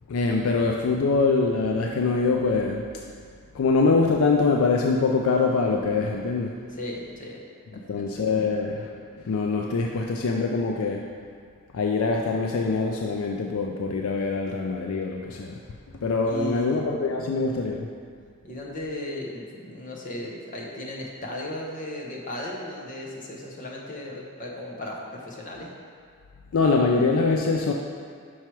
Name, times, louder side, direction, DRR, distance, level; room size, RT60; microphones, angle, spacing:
voice 1, 0.1-2.8 3.5-6.6 7.9-8.9 9.2-11.0 11.7-15.6 16.0-17.9 26.5-27.7, left 4 dB, 65° left, 1 dB, 0.4 m, -24 dB
voice 2, 6.7-7.4 7.7-8.3 16.2-16.8 18.4-25.7, left 1 dB, 35° left, -2 dB, 0.9 m, -36 dB
5.8 x 4.6 x 4.5 m, 2.1 s
head